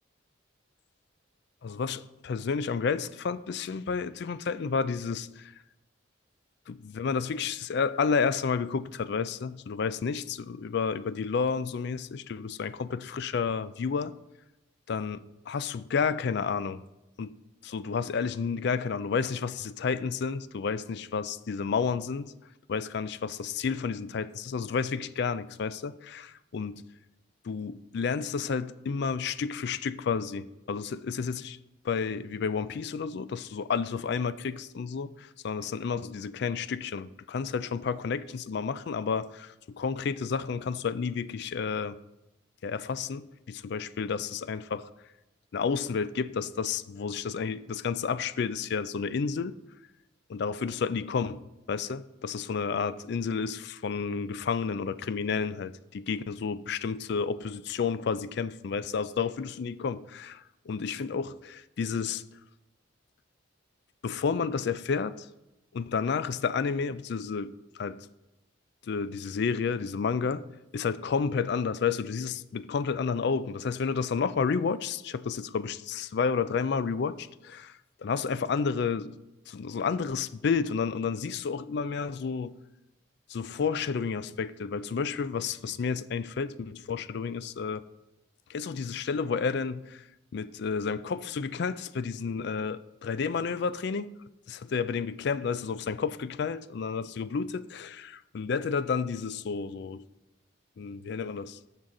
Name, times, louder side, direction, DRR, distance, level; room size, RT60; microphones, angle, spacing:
voice 1, 1.6-5.5 6.7-14.1 14.9-16.8 17.2-17.3 17.6-22.3 22.7-26.8 27.4-31.6 31.8-42.0 42.6-44.9 45.5-49.5 50.3-51.4 51.7-62.2 64.0-65.3 65.7-68.1 68.8-70.4 70.7-79.2 79.5-82.6 83.3-87.8 88.5-90.1 90.3-94.1 94.5-100.0 100.8-101.6, left 5 dB, 55° left, 0.4 m, -31 dB
14.0 x 5.7 x 3.8 m
head